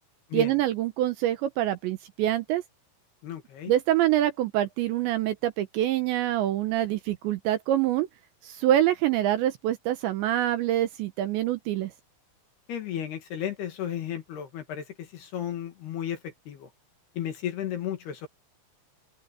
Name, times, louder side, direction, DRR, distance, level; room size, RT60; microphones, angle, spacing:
voice 1, 0.3-2.6 3.7-8.1 8.4-11.9, right 13 dB, 75° right, 2.9 m, -25 dB
voice 2, 3.2-3.7 12.7-16.7 17.2-18.3, left 10 dB, 60° left, 3.5 m, -34 dB
open air
omnidirectional pair, 5.9 m